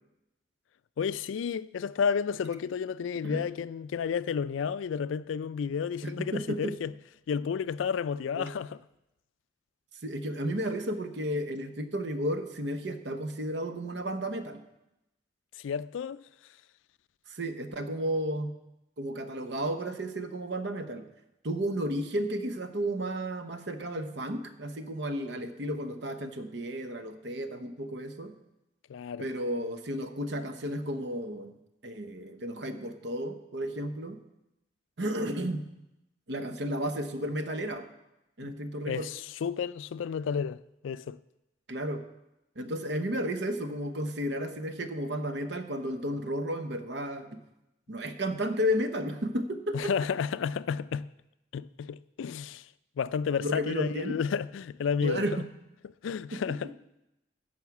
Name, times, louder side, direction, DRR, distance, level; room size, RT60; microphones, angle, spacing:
voice 1, 1.0-6.9 7.3-8.8 15.6-16.2 28.9-29.3 38.4-38.6 38.9-40.6 40.8-41.2 49.7-51.1 51.5-52.7 53.0-55.2 56.0-56.7, left 6 dB, 80° left, 0.3 m, -31 dB
voice 2, 6.0-6.8 8.4-8.5 10.0-14.6 17.3-18.5 19.0-21.1 21.4-28.4 29.2-31.5 31.8-34.2 35.0-35.7 36.3-37.9 38.4-39.1 41.7-42.0 42.6-47.4 47.9-49.9 53.4-54.2 55.0-55.5 56.3-56.6, equal, 60° right, 0.9 m, -33 dB
10.5 x 6.3 x 7.1 m
head